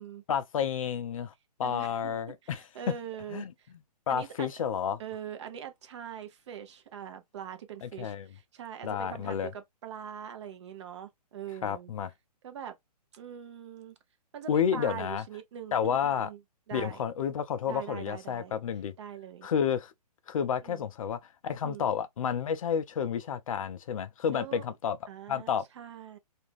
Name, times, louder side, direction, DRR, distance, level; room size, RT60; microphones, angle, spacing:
voice 1, 0.3-1.3 1.6-2.6 3.3-3.5 4.1-5.0 7.8-8.3 8.8-9.5 11.6-12.1 14.5-15.2 15.7-16.3 16.7-18.9 19.4-19.9 20.3-25.0 25.3-25.6, left 7 dB, 55° left, 0.4 m, -30 dB
voice 2, 1.6-2.2 2.4-3.7 4.1-4.5 5.0-11.9 12.4-12.8 13.1-14.0 14.3-16.4 16.7-17.0 17.7-18.5 19.0-19.5 20.6-20.9 21.6-21.9 24.3-24.7 25.1-26.2, right 9 dB, 45° right, 0.6 m, -43 dB
2.5 x 2.1 x 3.1 m
hypercardioid pair, 135°, 21 cm